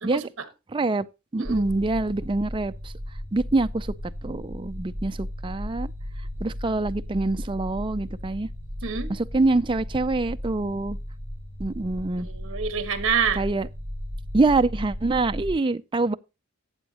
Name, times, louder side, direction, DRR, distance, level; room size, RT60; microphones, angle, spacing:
voice 1, 0.0-0.5 1.4-1.7 8.8-9.1 12.2-13.4, right 6 dB, 60° right, 1.4 m, -27 dB
voice 2, 0.7-1.1 1.3-2.9 3.3-3.9 4.2-5.9 6.4-8.5 9.1-11.0 11.6-12.3 13.4-13.7 14.3-16.2, right 2 dB, 20° right, 0.4 m, -25 dB
sound 1, 1.4-15.5, equal, 10° left, 7.0 m, -35 dB
12.5 x 7.8 x 2.9 m
head